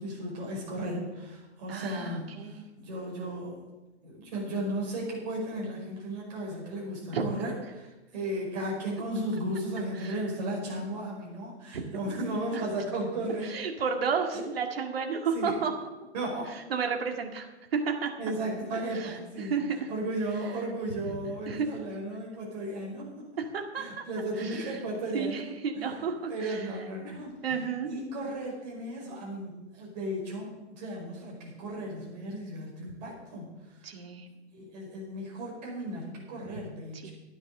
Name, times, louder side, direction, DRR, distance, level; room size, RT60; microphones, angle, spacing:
voice 1, 0.0-3.6 4.0-13.6 14.3-14.4 15.3-15.5 16.1-16.5 18.2-19.6 19.9-23.1 23.7-25.4 25.7-26.0 26.3-33.5 33.7-33.9 34.5-37.1, right 1 dB, 35° right, -3 dB, 5.2 m, -35 dB
voice 2, 1.7-2.6 7.1-7.3 10.0-10.2 11.7-11.8 12.5-12.6 13.5-15.7 16.7-17.5 17.7-18.1 18.9-19.1 19.4-19.9 21.5-21.7 23.4-24.0 24.4-24.7 25.1-26.6 27.4-27.9 33.8-34.3 37.0-37.1, right 6 dB, 55° right, 4 dB, 2.1 m, -32 dB
12.5 x 9.4 x 6.7 m, 1.1 s
hypercardioid pair, 170°, 36 cm